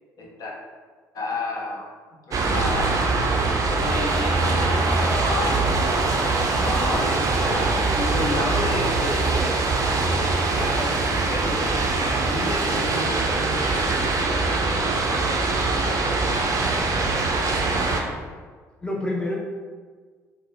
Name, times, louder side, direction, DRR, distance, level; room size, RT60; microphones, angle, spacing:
voice 1, 0.2-0.5 1.1-1.9 2.3-3.0 3.5-5.7 6.6-15.8, left 2 dB, 45° left, -2 dB, 0.8 m, -32 dB
sound 1, 2.3-18.0, right 3 dB, 40° right, 0.5 m, -23 dB
voice 2, 16.4-16.9 18.8-19.4, left 1 dB, 10° left, -2 dB, 0.7 m, -29 dB
4.0 x 2.2 x 3.1 m, 1.5 s
figure-of-eight pair, 50°, 9 cm